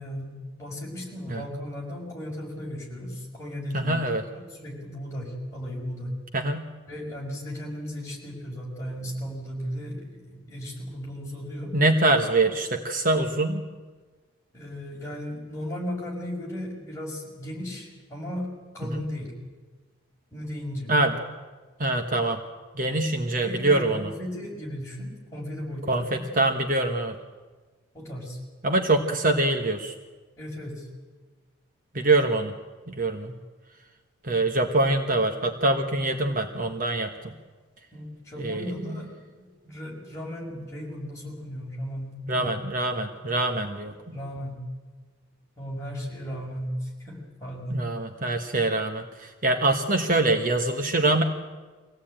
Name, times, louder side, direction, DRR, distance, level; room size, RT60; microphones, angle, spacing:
voice 1, 0.0-4.0 4.3-6.1 6.9-11.8 14.5-19.3 20.3-20.9 23.4-26.2 27.9-28.4 30.4-30.9 37.9-39.1 39.4-42.5 44.1-44.6 45.6-47.9, equal, 15° left, -4 dB, 5.8 m, -36 dB
voice 2, 3.7-4.2 6.3-6.6 11.7-13.6 18.9-19.1 20.9-21.1 21.8-22.4 22.7-24.1 25.9-27.1 28.6-29.9 31.9-32.5 32.9-33.4 34.2-37.1 38.4-38.9 42.3-43.9 47.7-51.2, right 2 dB, 40° right, 5 dB, 1.2 m, -24 dB
24.0 x 17.0 x 8.9 m, 1.4 s
head